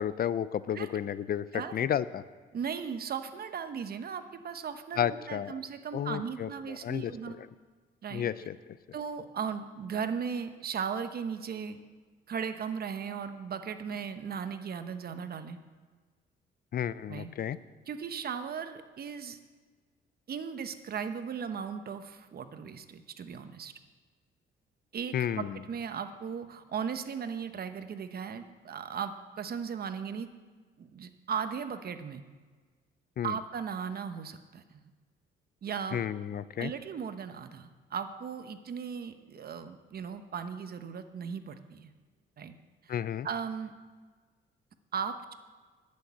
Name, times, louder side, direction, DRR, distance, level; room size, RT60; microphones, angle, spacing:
voice 1, 0.0-2.2 5.0-5.5 5.9-7.1 7.4-7.5 8.1-8.6 16.7-17.6 25.1-25.6 33.2-33.3 35.9-36.7 42.9-43.3, left 9 dB, 50° left, 17 dB, 0.4 m, -32 dB
voice 2, 1.5-1.9 2.5-7.4 8.0-8.2 8.9-11.8 12.3-15.6 17.1-17.3 17.9-19.4 20.3-23.7 24.9-30.3 30.8-32.2 33.2-34.9 35.6-36.0 36.6-41.9 42.4-42.5 42.8-42.9 43.2-43.7 44.9-45.3, right 6 dB, 50° right, 9 dB, 0.9 m, -37 dB
11.5 x 6.5 x 8.4 m, 1.4 s
cardioid pair, 90°, 20 cm